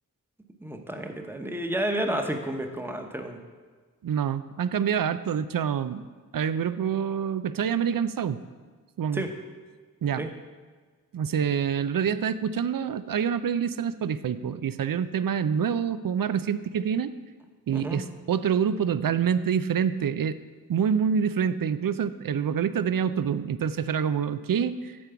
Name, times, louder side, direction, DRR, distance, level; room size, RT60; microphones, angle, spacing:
voice 1, 0.6-3.4 9.1-9.3 10.2-10.3 17.7-18.0, right 1 dB, 5° right, 4 dB, 1.0 m, -31 dB
voice 2, 4.0-6.0 6.3-8.4 9.0-9.2 10.0-10.3 11.1-17.1 17.7-20.4 20.7-25.0, right 7 dB, 70° right, 14 dB, 0.5 m, -26 dB
8.6 x 4.6 x 6.9 m, 1.5 s
cardioid pair, 40°, 35 cm